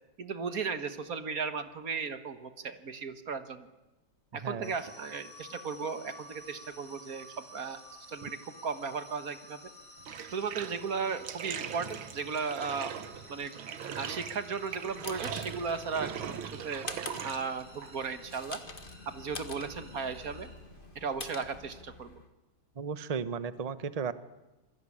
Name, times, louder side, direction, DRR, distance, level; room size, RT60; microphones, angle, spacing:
voice 1, 0.2-3.7 4.3-7.8 8.1-9.6 10.3-13.5 14.0-16.9 17.2-18.6 19.1-20.5 21.0-22.2, right 5 dB, 50° right, 10 dB, 1.8 m, -36 dB
voice 2, 4.4-4.7 8.2-8.3 22.8-24.1, right 6 dB, 30° right, 13 dB, 0.7 m, -35 dB
sound 1, 4.6-20.5, equal, 10° left, 7.7 m, -53 dB
Bathtub (filling or washing), 10.0-21.7, right 8 dB, 85° right, 2.0 m, -42 dB
sound 2, 14.6-22.3, left 3 dB, 30° left, 1.7 m, -46 dB
27.0 x 21.0 x 9.9 m, 1.1 s
omnidirectional pair, 2.1 m